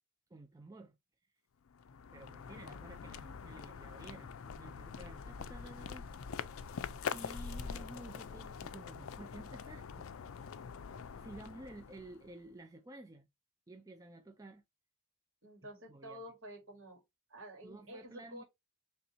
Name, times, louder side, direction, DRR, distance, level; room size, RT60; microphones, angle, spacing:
voice 1, 0.3-1.0 2.1-6.1 7.1-10.1 11.2-13.3 13.7-14.6 15.9-16.2 17.6-18.4, right 2 dB, 15° right, 0.3 m, -52 dB
sound 1, 1.7-12.4, left 6 dB, 70° left, 0.4 m, -44 dB
voice 2, 15.4-17.0 17.3-18.5, equal, 60° right, 2.2 m, -50 dB
4.2 x 3.3 x 2.7 m
head